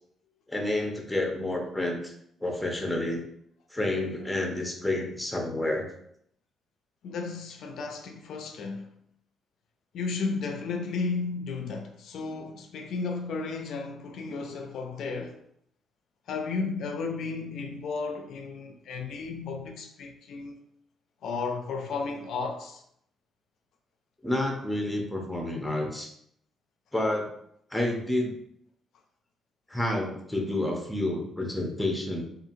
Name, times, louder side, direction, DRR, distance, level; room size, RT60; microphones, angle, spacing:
voice 1, 0.5-2.1 2.4-3.2 3.7-5.9 24.2-26.1 26.9-27.3 27.7-28.4 29.7-32.2, left 1 dB, 5° left, 0.7 m, -29 dB
voice 2, 7.0-8.9 9.9-15.4 16.3-20.6 21.2-22.8, left 4 dB, 70° left, 0.3 m, -33 dB
2.7 x 2.5 x 2.6 m
cardioid pair, 90°, 0 cm